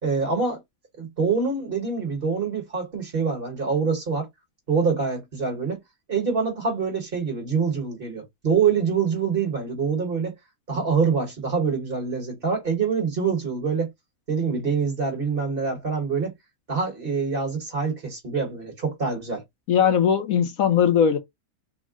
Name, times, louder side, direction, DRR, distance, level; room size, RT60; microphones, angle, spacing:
voice 1, 0.0-0.6 1.0-4.3 4.7-5.8 6.1-10.3 10.7-13.9 14.3-16.3 16.7-19.4, right 5 dB, 45° right, 1.2 m, -25 dB
voice 2, 19.7-21.2, left 8 dB, 70° left, 1.2 m, -19 dB
3.6 x 2.1 x 3.5 m
omnidirectional pair, 1.5 m